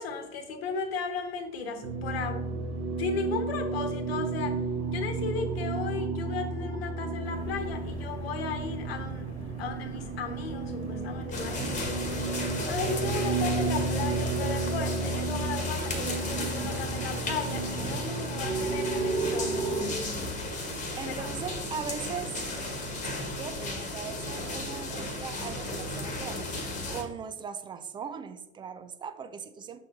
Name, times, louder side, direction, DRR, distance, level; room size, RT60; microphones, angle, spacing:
voice 1, 0.0-2.4 3.0-4.6 4.9-9.3 9.6-12.0 12.7-20.3 21.2-21.3, left 5 dB, 60° left, 6 dB, 1.2 m, -35 dB
sound 1, 1.8-19.8, right 4 dB, 40° right, 1.4 m, -32 dB
sound 2, 7.2-12.2, equal, 80° left, 1.6 m, -45 dB
sound 3, 11.3-27.0, left 2 dB, 20° left, 1.3 m, -35 dB
voice 2, 21.0-22.4 23.3-26.4 26.9-29.8, right 6 dB, 15° right, 9 dB, 0.3 m, -39 dB
7.8 x 6.4 x 2.6 m, 0.95 s
figure-of-eight pair, 75°, 33 cm